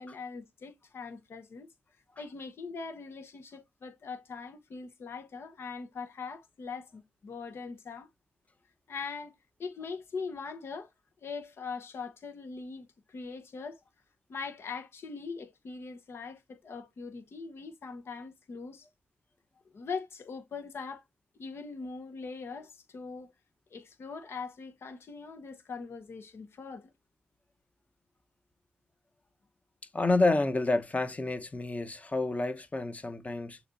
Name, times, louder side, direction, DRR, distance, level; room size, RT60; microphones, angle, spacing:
voice 1, 0.0-1.7 2.2-8.1 8.9-9.3 9.6-10.9 11.2-13.8 14.3-18.9 19.7-21.0 21.4-23.3 23.7-26.9, left 4 dB, 70° left, 0.9 m, -41 dB
voice 2, 29.9-33.6, left 2 dB, 35° left, 1.0 m, -29 dB
6.5 x 3.1 x 2.6 m
supercardioid pair, 45°, 4 cm